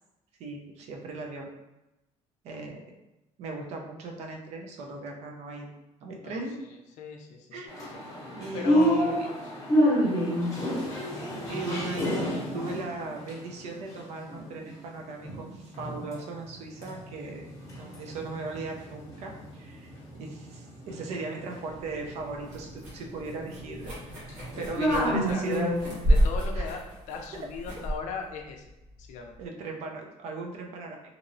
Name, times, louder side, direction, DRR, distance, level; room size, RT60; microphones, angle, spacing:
voice 1, 0.4-1.5 2.4-2.8 3.4-5.7 6.0-6.6 7.5-7.7 8.3-9.2 11.5-12.2 12.5-17.4 17.8-23.9 24.6-25.7 26.6-26.7 29.4-31.0, right 3 dB, 60° right, 1 dB, 0.5 m, -38 dB
voice 2, 7.0-7.6 7.9-8.2 8.5-9.5 11.1-11.3 24.6-24.9 25.3-25.5 26.1-28.6 29.0-29.3, left 5 dB, 70° left, 2 dB, 0.4 m, -38 dB
sound 1, 7.7-14.8 15.2-16.2 16.5-26.1, equal, 25° left, 0.8 m, -30 dB
sound 2, 21.8-29.5, equal, 90° right, 1.0 m, -30 dB
2.8 x 2.0 x 2.5 m, 0.95 s
cardioid pair, 150°, 13 cm